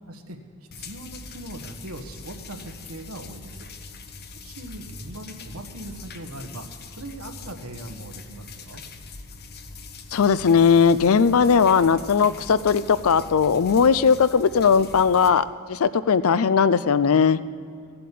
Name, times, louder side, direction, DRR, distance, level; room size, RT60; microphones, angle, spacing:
voice 1, 0.1-0.4 0.8-3.7 4.4-6.7 6.9-8.8, right 1 dB, 85° right, 5 dB, 1.3 m, -39 dB
sound 1, 0.7-15.3, left 3 dB, 50° left, 0.9 m, -42 dB
voice 2, 10.1-17.4, left 6 dB, 75° left, 16 dB, 0.5 m, -18 dB
15.0 x 7.8 x 8.5 m, 2.3 s
head